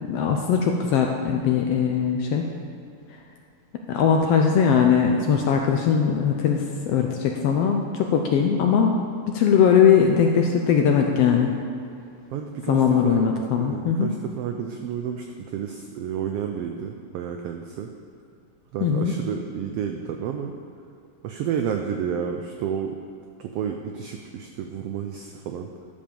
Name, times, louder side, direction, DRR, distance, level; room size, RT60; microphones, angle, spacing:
voice 1, 0.0-2.5 3.9-8.9 9.3-11.5 12.7-14.1 18.8-19.1, left 7 dB, 75° left, 2 dB, 1.5 m, -20 dB
voice 2, 12.3-13.3 13.6-17.9 18.7-20.5 21.2-23.0 23.4-25.7, right 8 dB, 85° right, 4 dB, 1.3 m, -31 dB
13.0 x 5.3 x 6.9 m, 2.5 s
omnidirectional pair, 3.4 m